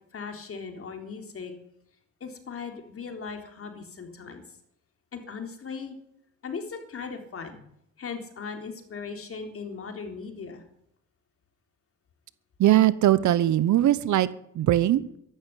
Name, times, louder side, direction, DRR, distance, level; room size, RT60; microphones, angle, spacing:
voice 1, 0.1-1.5 2.2-4.4 5.1-6.0 6.4-7.6 8.0-10.6, left 5 dB, 50° left, 5 dB, 3.6 m, -38 dB
voice 2, 12.6-14.3 14.5-15.0, right 13 dB, 70° right, 17 dB, 1.0 m, -20 dB
14.0 x 11.5 x 8.5 m, 0.73 s
cardioid pair, 90°, 30 cm